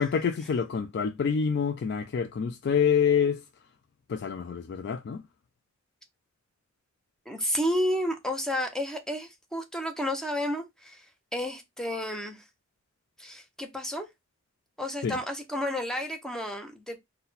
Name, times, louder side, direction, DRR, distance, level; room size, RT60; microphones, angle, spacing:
voice 1, 0.0-3.4 4.1-5.2 15.0-15.2, left 7 dB, 55° left, 0.3 m, -27 dB
voice 2, 7.3-11.1 11.3-12.4 13.2-14.1 14.8-17.0, equal, 5° left, 0.7 m, -31 dB
4.0 x 2.2 x 3.9 m
head